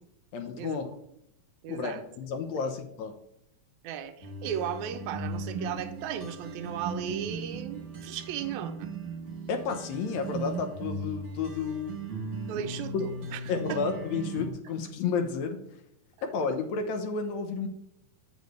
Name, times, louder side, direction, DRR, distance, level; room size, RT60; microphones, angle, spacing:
voice 1, 0.3-0.9 1.7-3.1 9.5-12.1 13.5-15.6 16.2-17.7, left 5 dB, 80° left, 6 dB, 2.0 m, -31 dB
voice 2, 1.6-2.0 2.5-2.7 3.8-8.9 12.5-13.4 13.7-13.8, right 8 dB, 80° right, 8 dB, 2.0 m, -36 dB
sound 1, 4.2-14.5, right 3 dB, 45° right, 1.0 m, -38 dB
8.0 x 6.8 x 3.1 m, 0.76 s
omnidirectional pair, 3.4 m